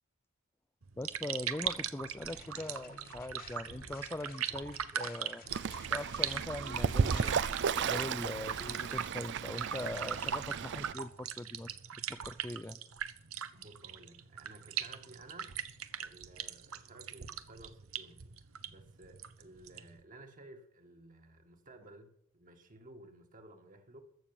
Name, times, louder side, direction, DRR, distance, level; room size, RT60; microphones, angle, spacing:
sound 1, 0.8-20.0, right 8 dB, 75° right, 0.9 m, -40 dB
voice 1, 1.0-5.4 5.9-7.5 7.8-11.8 12.1-12.8, left 1 dB, 10° left, 0.4 m, -41 dB
sound 2, 2.3-8.8, left 4 dB, 45° left, 1.6 m, -53 dB
Fowl / Bird, 5.5-10.9, right 6 dB, 55° right, 0.5 m, -34 dB
voice 2, 13.5-15.6 15.9-24.0, right 2 dB, 40° right, 1.8 m, -55 dB
14.5 x 6.7 x 8.9 m
head